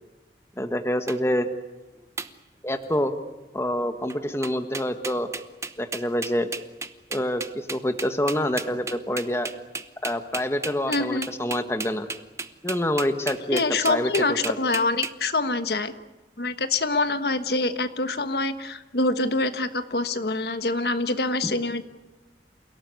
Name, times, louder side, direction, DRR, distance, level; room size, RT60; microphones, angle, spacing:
voice 1, 0.6-1.5 2.6-3.1 3.5-5.3 5.8-6.5 7.1-9.5 10.0-12.1 12.6-14.1 14.4-14.5 21.4-21.5, left 1 dB, 15° left, 8 dB, 1.4 m, -26 dB
sound 1, 1.1-1.2 2.2-2.3 2.8-3.1 4.1-4.2 4.4-15.1, right 4 dB, 15° right, 0.9 m, -33 dB
voice 2, 10.9-11.3 13.5-15.9 16.4-21.8, left 3 dB, 65° left, 9 dB, 1.4 m, -25 dB
28.5 x 18.0 x 9.6 m, 1.1 s
head